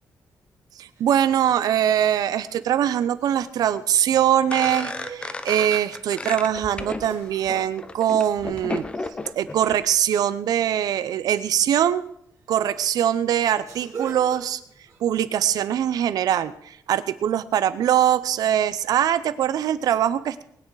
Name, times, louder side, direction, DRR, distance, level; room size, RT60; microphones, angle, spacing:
voice 1, 0.8-8.8 9.4-12.0 12.5-14.6 15.0-20.4, right 10 dB, 70° right, 15 dB, 0.7 m, -22 dB
sound 1, 1.0-1.6 2.5-2.6 3.0-4.5 5.0-6.2 7.1-7.8 8.3-8.7 10.0-10.3 10.6-10.8 11.3-11.6 12.3-12.4 12.8-15.0, right 5 dB, 50° right, 2.3 m, -43 dB
sound 2, 4.5-9.8, left 2 dB, 15° left, 0.7 m, -33 dB
20.0 x 9.1 x 4.8 m, 0.71 s
wide cardioid pair, 170°, 7 cm